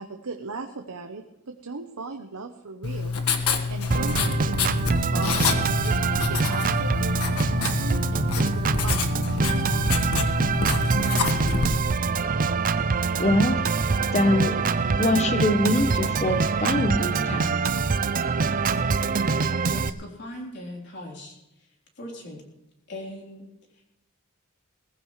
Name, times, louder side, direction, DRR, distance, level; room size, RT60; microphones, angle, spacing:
voice 1, 0.0-10.1, right 3 dB, 85° right, 5 dB, 0.9 m, -38 dB
Writing, 2.8-11.8, left 4 dB, 90° left, 1.4 m, -27 dB
Organ, 3.9-19.9, right 4 dB, 40° right, 0.5 m, -25 dB
voice 2, 13.2-13.7 14.1-14.7 15.0-17.7, left 1 dB, 30° left, 8 dB, 0.9 m, -24 dB
voice 3, 19.5-21.4 22.0-22.4 22.9-23.5, left 1 dB, 50° left, -1 dB, 3.8 m, -39 dB
19.5 x 15.5 x 3.2 m, 0.90 s
head